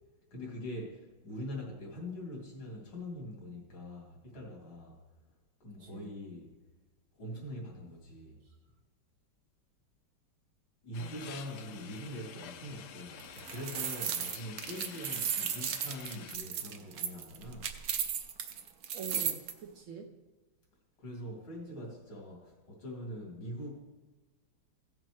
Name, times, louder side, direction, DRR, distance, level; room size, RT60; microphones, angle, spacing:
voice 1, 0.3-5.0 5.6-6.5 7.2-8.4 10.8-17.7 21.0-23.7, left 1 dB, 85° left, -2 dB, 3.4 m, -43 dB
voice 2, 5.8-6.1 11.0-11.3 11.7-11.8 18.9-20.2, right 4 dB, 80° right, 2 dB, 0.7 m, -46 dB
sound 1, 10.9-16.4, left 9 dB, 70° left, 1.0 m, -49 dB
sound 2, 13.2-19.5, right 8 dB, 65° right, 1.0 m, -35 dB
16.0 x 7.5 x 3.1 m, 1.2 s
omnidirectional pair, 2.2 m